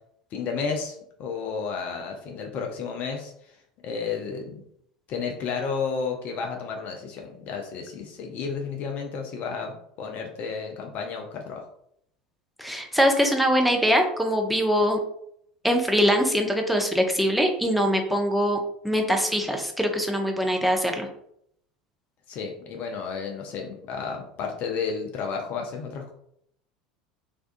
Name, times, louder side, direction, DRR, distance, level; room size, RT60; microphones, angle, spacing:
voice 1, 0.3-3.6 3.8-4.6 5.1-11.7 22.3-26.1, left 5 dB, 45° left, 2 dB, 0.5 m, -32 dB
voice 2, 12.6-15.0 15.6-18.6 18.8-21.1, equal, ahead, 2 dB, 0.5 m, -22 dB
2.5 x 2.2 x 2.5 m, 0.71 s
figure-of-eight pair, 75°, 4 cm